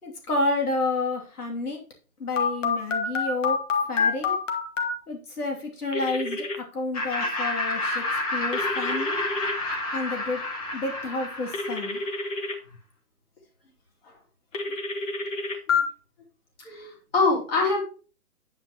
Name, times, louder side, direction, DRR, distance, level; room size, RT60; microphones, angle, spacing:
voice 1, 0.0-1.8 2.2-3.6 3.9-4.4 5.1-8.0 8.3-9.2 9.9-10.4 10.7-12.0, left 2 dB, 80° left, 1 dB, 2.8 m, -30 dB
Telephone, 2.4-4.9 5.9-6.6 8.5-9.5 11.5-12.5 14.5-15.8, left 5 dB, 55° left, 1.7 m, -27 dB
Laughter, 6.9-12.2, left 2 dB, 25° left, 1.6 m, -30 dB
voice 2, 16.6-17.8, left 3 dB, 40° left, -1 dB, 3.2 m, -24 dB
9.2 x 7.5 x 3.0 m, 0.35 s
hypercardioid pair, 170°, 44 cm